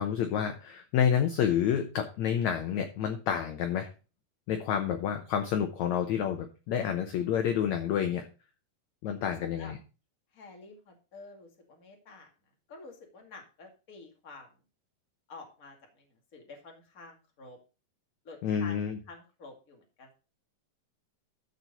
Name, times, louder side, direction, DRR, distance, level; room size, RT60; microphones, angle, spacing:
voice 1, 0.0-3.9 4.5-8.3 9.0-9.8 18.4-19.0, left 8 dB, 70° left, 6 dB, 1.8 m, -29 dB
voice 2, 9.4-9.7 10.3-12.3 12.7-14.5 15.3-17.6 18.2-18.8 19.1-20.1, left 3 dB, 30° left, 2 dB, 1.9 m, -49 dB
13.5 x 4.6 x 5.3 m, 0.33 s
omnidirectional pair, 4.3 m